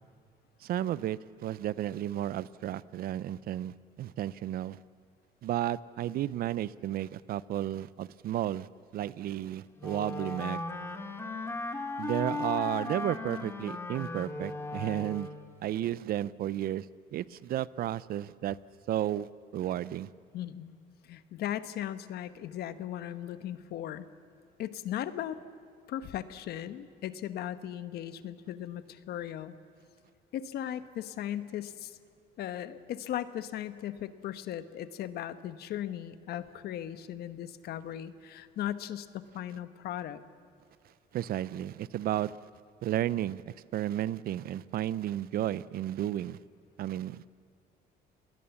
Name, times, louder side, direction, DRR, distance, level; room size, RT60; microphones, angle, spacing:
voice 1, 0.6-4.8 5.4-8.7 8.9-10.6 12.0-15.3 15.6-16.9 17.1-18.6 18.9-20.1 41.1-42.4 42.8-46.4 46.8-47.3, right 12 dB, 60° right, 19 dB, 0.6 m, -33 dB
Wind instrument woodwind instrument, 9.8-15.5, left 3 dB, 15° left, 2.1 m, -37 dB
voice 2, 20.3-20.7 21.0-24.1 24.6-25.4 25.9-29.5 30.3-32.0 32.4-40.2, left 11 dB, 70° left, 12 dB, 1.2 m, -37 dB
29.0 x 20.0 x 7.1 m, 2.3 s
cardioid pair, 110°, 17 cm